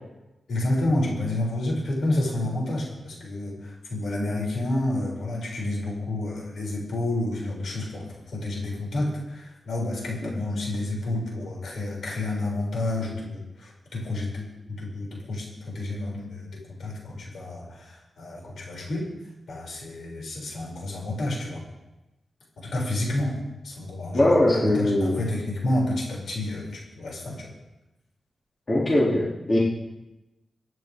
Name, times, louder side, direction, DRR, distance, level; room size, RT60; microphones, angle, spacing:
voice 1, 0.5-19.1 19.5-21.6 22.6-27.5, left 1 dB, 75° left, -3 dB, 6.8 m, -30 dB
voice 2, 24.1-25.1 28.7-29.6, left 1 dB, 30° left, -6 dB, 3.0 m, -21 dB
24.5 x 10.5 x 3.7 m, 1.0 s
wide cardioid pair, 140°, 0 cm